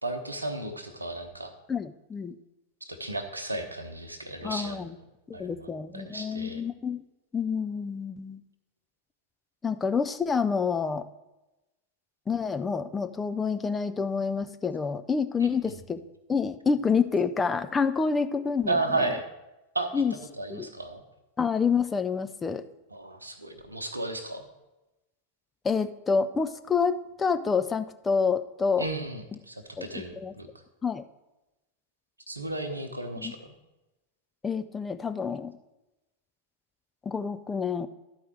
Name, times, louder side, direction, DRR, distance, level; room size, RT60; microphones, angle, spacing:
voice 1, 0.0-1.5 2.8-4.9 5.3-5.7 5.9-6.6 15.6-15.8 18.7-19.2 19.7-21.0 22.9-24.4 28.8-30.5 32.3-33.5, right 2 dB, 80° right, 7 dB, 0.9 m, -34 dB
voice 2, 1.7-2.3 4.4-5.0 5.3-7.0 7.3-8.4 9.6-11.1 12.3-16.0 16.3-19.1 19.9-20.1 20.5-20.7 21.4-22.6 25.6-28.9 29.8-30.3 30.8-31.0 33.2-33.3 34.4-35.5 37.1-37.9, left 5 dB, 15° left, 9 dB, 0.4 m, -28 dB
12.0 x 4.7 x 4.6 m, 0.99 s
figure-of-eight pair, 90°, 0 cm